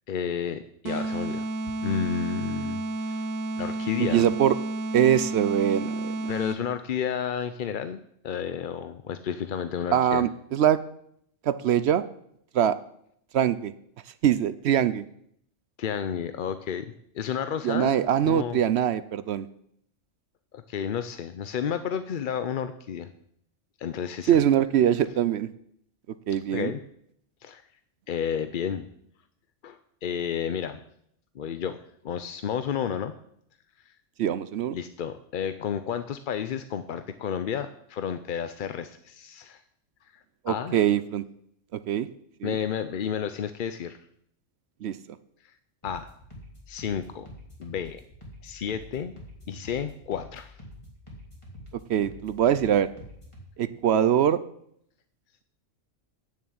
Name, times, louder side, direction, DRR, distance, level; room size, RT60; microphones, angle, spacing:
voice 1, 0.1-1.5 1.8-3.3 3.6-4.3 6.3-10.2 15.8-16.9 17.1-17.9 18.3-18.6 20.5-23.1 23.8-24.4 26.5-26.8 27.4-27.6 28.1-28.9 29.6-30.8 31.3-31.8 32.0-33.1 33.9-34.0 34.7-39.6 40.1-40.8 42.4-44.0 45.4-45.5 45.8-46.1 46.7-47.3 47.6-48.0 48.4-49.1 49.5-50.6, left 8 dB, 55° left, 10 dB, 0.6 m, -31 dB
sound 1, 0.8-6.8, right 2 dB, 80° right, 1.1 m, -31 dB
voice 2, 4.1-4.5 4.9-6.3 9.9-10.8 11.4-12.0 12.5-12.8 13.3-13.7 14.2-15.0 17.6-19.5 24.3-25.5 26.3-26.7 34.2-34.7 40.4-41.2 41.9-42.1 42.4-42.6 44.8-45.0 51.9-52.9 53.6-54.4, right 10 dB, 65° right, 14 dB, 0.8 m, -23 dB
sound 2, 45.8-53.4, equal, 25° left, 3.0 m, -46 dB
9.5 x 7.2 x 8.5 m, 0.70 s
omnidirectional pair, 1.3 m